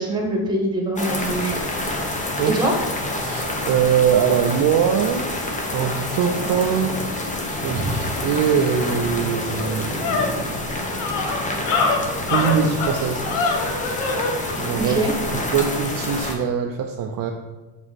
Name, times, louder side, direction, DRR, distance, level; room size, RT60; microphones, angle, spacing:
voice 1, 0.0-1.6 2.6-2.7 7.7-8.0 14.8-15.1, right 2 dB, 10° right, 0 dB, 1.5 m, -23 dB
sound 1, 1.0-16.4, left 1 dB, 15° left, 0.9 m, -28 dB
voice 2, 3.2-5.4 5.7-7.0 7.6-10.5 12.3-13.2 14.6-15.0 15.3-17.3, right 8 dB, 45° right, 3 dB, 0.6 m, -22 dB
sound 2, 9.4-14.4, left 4 dB, 85° left, 1.3 m, -24 dB
7.2 x 5.0 x 4.2 m, 1.2 s
cardioid pair, 145°, 49 cm